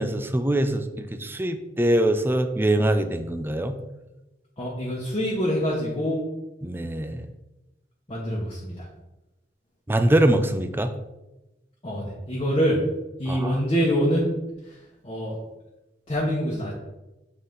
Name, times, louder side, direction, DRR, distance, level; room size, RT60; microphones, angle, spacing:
voice 1, 0.0-3.8 6.6-7.3 9.9-10.9 13.3-13.6, right 1 dB, 15° right, 8 dB, 0.5 m, -23 dB
voice 2, 4.6-6.2 8.1-8.9 11.8-12.8 13.2-14.3 14.6-15.4 16.1-16.7, equal, 30° left, -4 dB, 1.1 m, -25 dB
7.4 x 4.1 x 3.8 m, 0.99 s
head